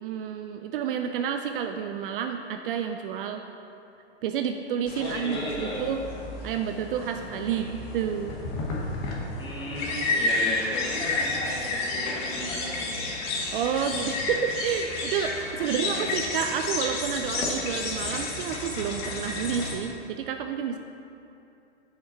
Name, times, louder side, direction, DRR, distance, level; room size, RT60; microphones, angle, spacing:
voice 1, 0.0-3.4 4.2-6.0 6.4-8.3 13.5-20.8, right 8 dB, 50° right, 6 dB, 0.4 m, -30 dB
sound 1, 4.9-19.8, left 2 dB, 40° left, 1.3 m, -31 dB
voice 2, 5.0-5.9 7.5-7.7 9.4-13.1 13.4-13.5 15.6-16.1, left 1 dB, 15° left, -4 dB, 1.4 m, -35 dB
6.4 x 5.8 x 4.4 m, 2.7 s
hypercardioid pair, 125°, 34 cm